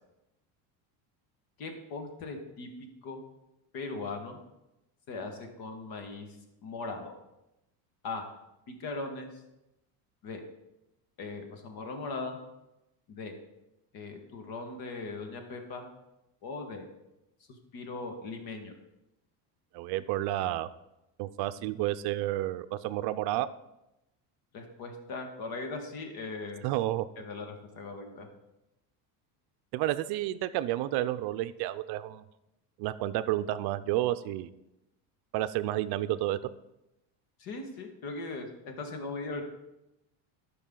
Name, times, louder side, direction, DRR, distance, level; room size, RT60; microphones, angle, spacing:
voice 1, 1.6-2.7 3.0-3.2 3.7-4.4 5.1-6.4 6.6-7.1 8.0-8.2 8.7-9.4 10.2-10.4 11.2-12.4 13.1-13.3 13.9-15.9 16.4-16.8 17.7-18.8 24.5-26.6 27.2-28.3 37.4-39.4, left 3 dB, 50° left, 4 dB, 1.7 m, -39 dB
voice 2, 19.7-20.7 21.2-23.5 26.6-27.1 29.7-32.2 32.8-34.5 35.3-36.4, right 14 dB, 60° right, 13 dB, 0.6 m, -30 dB
12.5 x 5.5 x 3.8 m, 0.92 s
cardioid pair, 135°, 45 cm